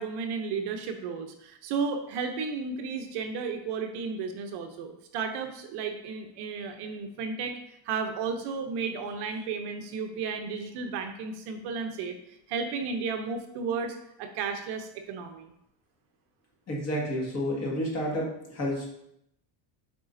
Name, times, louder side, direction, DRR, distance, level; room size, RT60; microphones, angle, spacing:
voice 1, 0.0-15.5, right 5 dB, 55° right, 5 dB, 0.7 m, -33 dB
voice 2, 16.7-18.9, equal, 30° left, -2 dB, 1.7 m, -30 dB
8.2 x 4.9 x 2.6 m, 0.78 s
cardioid pair, 160°, 49 cm